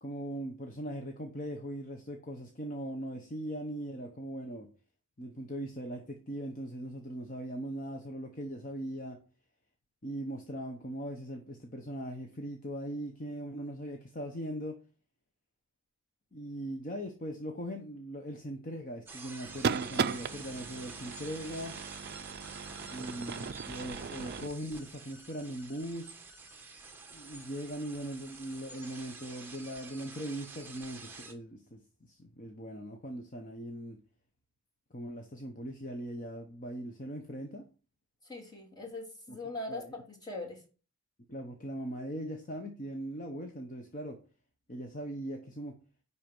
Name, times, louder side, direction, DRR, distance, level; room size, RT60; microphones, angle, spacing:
voice 1, 0.0-4.7 5.2-9.2 10.0-14.7 16.3-21.8 22.9-26.2 27.1-34.0 34.9-37.7 39.3-39.4 39.7-39.9 41.3-44.2 44.7-45.8, equal, 35° left, 1.0 m, -40 dB
sound 1, 19.1-31.3, right 3 dB, 10° right, 1.3 m, -48 dB
sound 2, 19.5-24.5, right 6 dB, 45° right, 0.4 m, -36 dB
voice 2, 38.2-40.6, left 2 dB, 20° left, 2.6 m, -41 dB
10.0 x 4.2 x 6.0 m
head